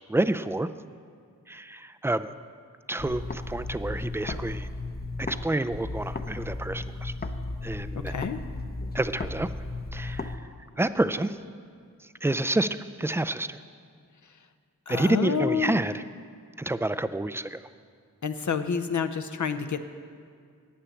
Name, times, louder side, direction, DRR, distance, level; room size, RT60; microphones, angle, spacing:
voice 1, 0.1-0.7 1.5-2.3 2.9-4.7 5.2-7.1 7.6-8.1 8.9-9.5 9.9-10.4 10.8-11.4 12.2-13.6 14.9-16.0 16.6-17.6, right 2 dB, 5° right, 12 dB, 0.4 m, -28 dB
sound 1, 3.0-5.4 5.7-10.4, left 2 dB, 25° left, 0.8 m, -35 dB
voice 2, 8.1-8.4 14.9-15.8 18.2-19.8, left 6 dB, 55° left, 9 dB, 0.7 m, -28 dB
10.0 x 8.8 x 7.2 m, 2.2 s
cardioid pair, 45°, 34 cm